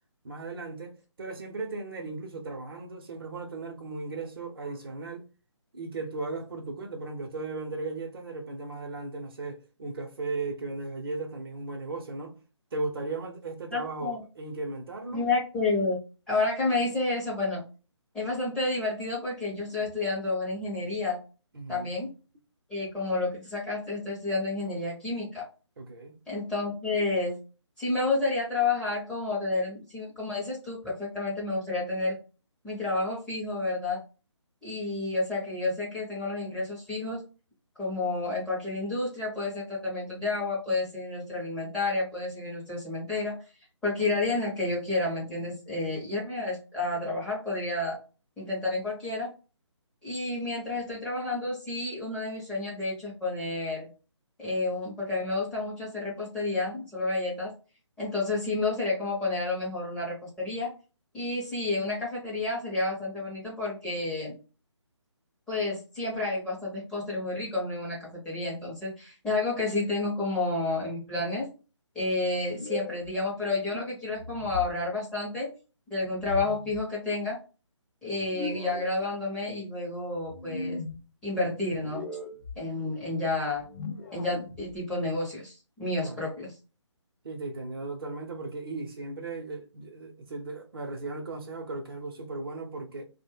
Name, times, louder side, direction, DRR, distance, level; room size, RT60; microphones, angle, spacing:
voice 1, 0.2-5.3 5.7-12.4 12.7-15.2 21.5-21.9 25.8-26.2 86.0-86.2 87.2-93.0, right 3 dB, 50° right, 0.7 m, -36 dB
voice 2, 13.7-14.2 15.1-16.0 16.3-17.6 18.1-21.2 21.7-22.1 22.7-25.4 26.3-27.3 27.8-32.2 32.6-34.0 34.6-37.3 37.8-43.4 43.8-48.0 48.4-49.3 50.0-53.9 54.4-57.5 58.0-60.7 61.1-64.3 65.5-71.5 71.9-75.5 75.9-77.4 78.0-80.8 81.2-82.0 82.6-83.7 84.1-86.5, left 2 dB, 5° left, 0.7 m, -30 dB
sound 1, 72.5-73.1 74.2-74.8 76.2-76.8 78.2-78.9 80.2-81.0 81.7-82.6 83.5-84.8, left 2 dB, 40° left, 0.5 m, -38 dB
2.4 x 2.2 x 3.4 m
figure-of-eight pair, 150°, 16 cm